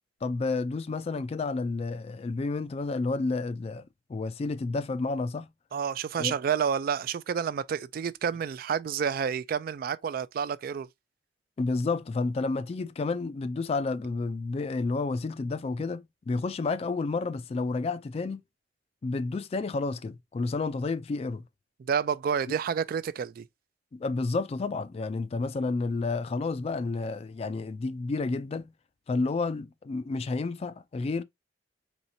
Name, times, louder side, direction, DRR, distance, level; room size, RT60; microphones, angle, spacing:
voice 1, 0.2-5.5 6.2-6.4 11.6-18.4 19.0-21.4 22.5-22.6 23.9-28.7 29.1-31.2, left 3 dB, 35° left, 0.3 m, -30 dB
voice 2, 5.7-10.9 21.9-23.4, right 7 dB, 55° right, 0.3 m, -29 dB
4.3 x 3.2 x 2.6 m
head